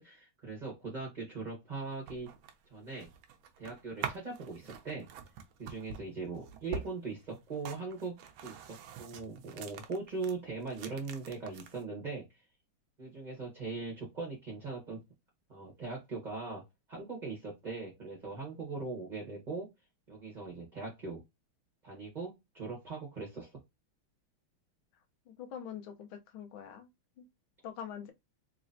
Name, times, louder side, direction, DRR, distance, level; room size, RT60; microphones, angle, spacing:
voice 1, 0.0-2.3 2.7-3.1 3.6-5.1 5.6-12.2 13.0-15.0 15.5-16.6 16.9-19.7 20.1-21.2 21.8-23.5, right 3 dB, 25° right, 1.0 m, -40 dB
sound 1, 1.8-10.3 10.6-11.8, right 7 dB, 75° right, 1.4 m, -45 dB
voice 2, 25.3-26.9 27.2-27.3 27.6-28.1, left 8 dB, 80° left, 1.6 m, -44 dB
4.0 x 3.2 x 2.6 m
omnidirectional pair, 2.3 m